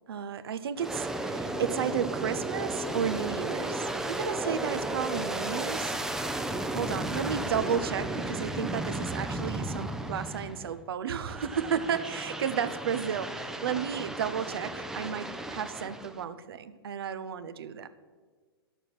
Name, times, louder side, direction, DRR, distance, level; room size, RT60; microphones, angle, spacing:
voice 1, 0.1-6.0 6.7-17.9, right 7 dB, 65° right, 13 dB, 0.6 m, -33 dB
Aircraft, 0.8-10.8 11.3-16.2, right 1 dB, 5° right, 0.5 m, -34 dB
10.0 x 6.9 x 5.9 m, 1.5 s
hypercardioid pair, 120°, 13 cm